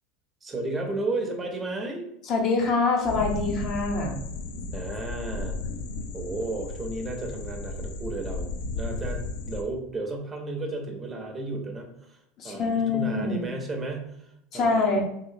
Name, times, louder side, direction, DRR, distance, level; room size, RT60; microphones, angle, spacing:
voice 1, 0.4-2.1 4.7-5.6 6.1-12.2 12.4-15.0, right 2 dB, 25° right, 3 dB, 0.6 m, -33 dB
voice 2, 2.2-4.2 12.4-13.5 14.5-15.0, left 3 dB, 50° left, 1 dB, 0.7 m, -25 dB
sound 1, 3.1-9.6, left 3 dB, 80° left, 0.4 m, -34 dB
3.0 x 2.8 x 2.6 m, 0.78 s
hypercardioid pair, 95°, 0 cm